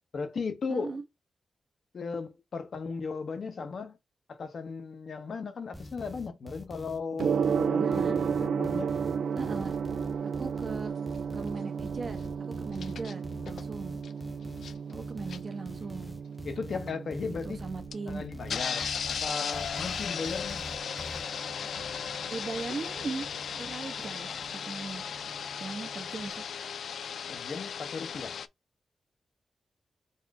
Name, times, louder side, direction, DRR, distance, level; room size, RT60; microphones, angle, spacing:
voice 1, 0.1-1.0 1.9-4.0 4.3-8.9 16.4-17.6 18.1-20.7 27.3-28.3, left 4 dB, 55° left, 0.9 m, -36 dB
voice 2, 0.7-1.0 7.8-8.2 9.3-9.7 10.4-10.9 11.3-14.0 14.9-16.1 17.3-18.2 22.3-23.3 23.6-24.3 24.6-25.0 25.6-26.4, right 4 dB, 40° right, 0.8 m, -38 dB
sound 1, 5.7-21.2, left 1 dB, 5° left, 0.5 m, -45 dB
Gong, 7.2-26.2, right 6 dB, 85° right, 0.3 m, -35 dB
sound 2, 9.7-9.8 12.7-13.1 13.5-13.6 14.0-14.1 14.5-14.9 15.3-15.4 16.0-16.1 16.9-17.0 17.9-18.0 18.5-28.5, left 7 dB, 85° left, 0.3 m, -36 dB
4.2 x 2.6 x 4.6 m
wide cardioid pair, 160°, 0 cm